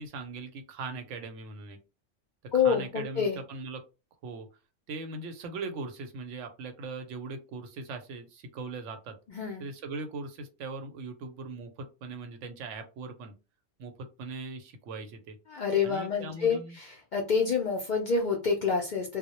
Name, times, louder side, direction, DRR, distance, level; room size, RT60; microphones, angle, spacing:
voice 1, 0.0-1.8 2.6-3.8 4.2-4.5 4.9-9.2 9.6-13.3 13.8-15.4 15.8-16.8, right 3 dB, 90° right, 6 dB, 0.9 m, -40 dB
voice 2, 2.5-3.4 9.3-9.7 15.5-19.2, left 5 dB, 60° left, 1 dB, 0.5 m, -28 dB
2.2 x 2.0 x 2.8 m, 0.30 s
omnidirectional pair, 1.2 m